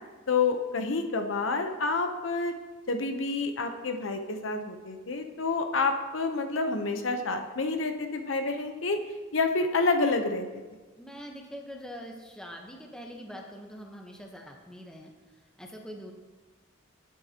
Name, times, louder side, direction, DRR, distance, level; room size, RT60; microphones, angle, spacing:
voice 1, 0.3-2.5 2.9-9.0 9.3-10.6, left 3 dB, 80° left, 6 dB, 0.9 m, -28 dB
voice 2, 11.0-16.1, equal, 5° left, 0 dB, 1.0 m, -44 dB
16.5 x 8.4 x 2.9 m, 1.3 s
head